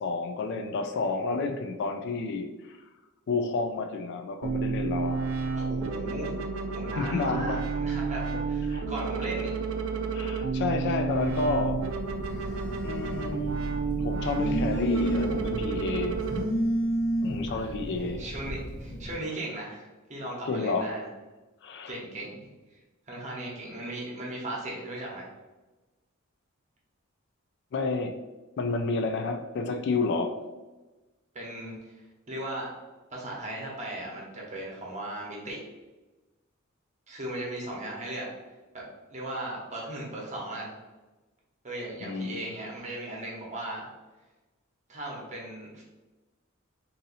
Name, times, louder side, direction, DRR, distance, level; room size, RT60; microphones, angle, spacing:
voice 1, 0.0-2.8 3.3-5.3 6.9-7.6 8.7-8.8 10.1-11.8 12.8-13.6 14.0-16.2 17.2-18.3 20.5-20.9 21.6-22.0 27.7-28.1 28.6-30.3 42.0-42.4, left 3 dB, 55° left, 6 dB, 0.3 m, -30 dB
sound 1, 4.4-16.4, right 4 dB, 75° right, 0.4 m, -31 dB
voice 2, 5.5-6.3 6.7-9.5 17.5-21.1 21.9-22.4 22.7-22.8 23.1-25.3 31.3-32.7 33.1-35.6 37.1-38.3 38.7-38.8 39.1-40.7 41.6-43.9 44.9-45.8, right 1 dB, 35° right, -3 dB, 0.9 m, -37 dB
Telephone, 11.1-19.1, equal, 35° left, 1.0 m, -32 dB
2.7 x 2.7 x 4.0 m, 1.2 s
head